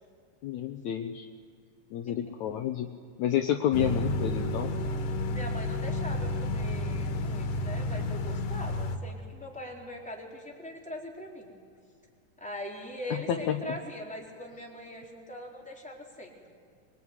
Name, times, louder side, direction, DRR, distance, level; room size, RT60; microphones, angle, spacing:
voice 1, 0.4-1.3 1.9-2.9 3.2-4.7 13.1-13.6, left 10 dB, 70° left, 6 dB, 2.1 m, -29 dB
sound 1, 3.7-9.0, left 1 dB, 85° left, 3.2 m, -31 dB
voice 2, 5.3-11.5 12.4-16.3, equal, ahead, -2 dB, 3.9 m, -41 dB
23.5 x 22.5 x 9.8 m, 2.2 s
omnidirectional pair, 3.7 m